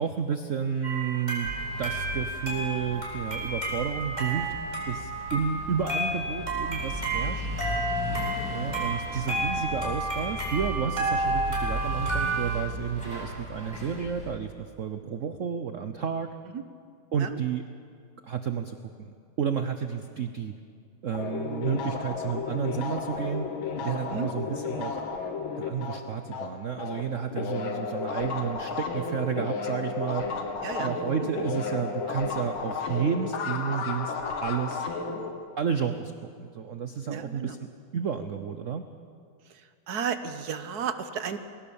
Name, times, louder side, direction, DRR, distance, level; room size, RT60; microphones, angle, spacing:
voice 1, 0.0-1.5 1.8-4.5 4.9-7.5 8.5-16.4 17.1-17.6 18.2-20.5 21.0-23.5 23.8-25.0 25.6-30.3 30.8-34.1 34.4-34.9 35.6-36.1 36.4-38.8, right 7 dB, 90° right, 8 dB, 0.6 m, -31 dB
sound 1, 0.8-12.5, right 2 dB, 20° right, 4.5 m, -31 dB
sound 2, 1.4-14.3, right 1 dB, 5° left, 7.5 m, -37 dB
sound 3, 21.1-27.0 27.3-35.3, left 5 dB, 70° left, 2.2 m, -33 dB
voice 2, 37.1-37.5 39.9-41.4, right 7 dB, 55° right, 10 dB, 1.2 m, -32 dB
22.0 x 17.5 x 7.1 m, 2.2 s
omnidirectional pair, 2.4 m